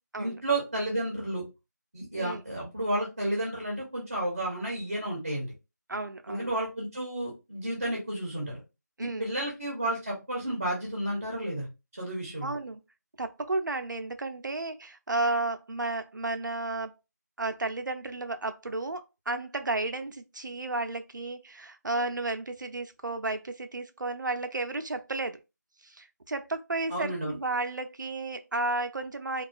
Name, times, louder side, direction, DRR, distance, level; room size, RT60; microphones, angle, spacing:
voice 1, 0.2-1.4 1.9-5.5 6.3-8.6 9.0-11.7 11.9-12.5 26.9-27.4, right 1 dB, 30° right, 0.6 m, -32 dB
voice 2, 5.9-6.5 9.0-9.3 12.4-12.8 13.2-16.9 17.4-25.4 25.8-29.4, right 2 dB, 80° right, 0.4 m, -33 dB
2.4 x 2.3 x 2.2 m
figure-of-eight pair, 175°, 10 cm